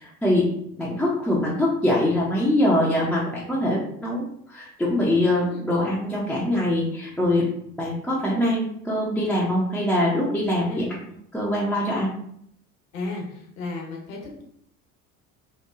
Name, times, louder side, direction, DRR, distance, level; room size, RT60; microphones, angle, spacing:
voice 1, 0.0-0.5 0.8-7.5 7.8-10.8 11.3-12.1, left 1 dB, 5° left, -6 dB, 0.3 m, -23 dB
voice 2, 12.9-14.4, left 2 dB, 65° left, 0 dB, 0.9 m, -33 dB
3.0 x 2.1 x 2.3 m, 0.70 s
figure-of-eight pair, 60°, 43 cm